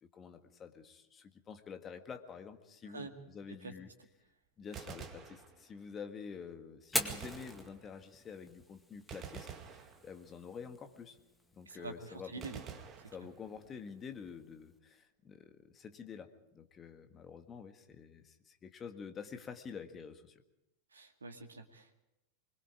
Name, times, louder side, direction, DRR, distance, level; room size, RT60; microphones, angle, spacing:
voice 1, 0.0-3.9 4.6-11.2 11.6-12.5 13.1-20.3, left 6 dB, 25° left, 7 dB, 1.7 m, -48 dB
Gunshot gunfire, 4.6-6.0 6.9-8.2 9.1-10.5 12.4-13.7, right 7 dB, 30° right, 2.1 m, -49 dB
Fire, 6.8-14.8, left 1 dB, 5° left, 2.0 m, -45 dB
voice 2, 11.7-12.6 20.9-22.0, right 3 dB, 75° right, 6 dB, 2.1 m, -46 dB
24.5 x 22.0 x 4.9 m, 0.91 s
figure-of-eight pair, 90°, 0 cm